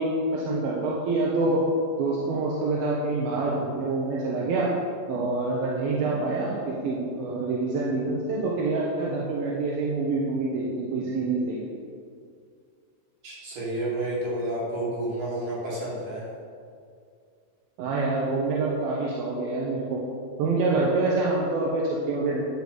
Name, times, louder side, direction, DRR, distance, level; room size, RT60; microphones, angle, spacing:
voice 1, 0.0-1.6 2.0-4.7 5.1-11.6 17.8-20.0 20.4-22.4, right 3 dB, 85° right, -4 dB, 3.1 m, -26 dB
voice 2, 13.2-16.3, right 1 dB, 65° right, -7 dB, 4.9 m, -30 dB
11.0 x 6.5 x 7.2 m, 2.2 s
omnidirectional pair, 4.1 m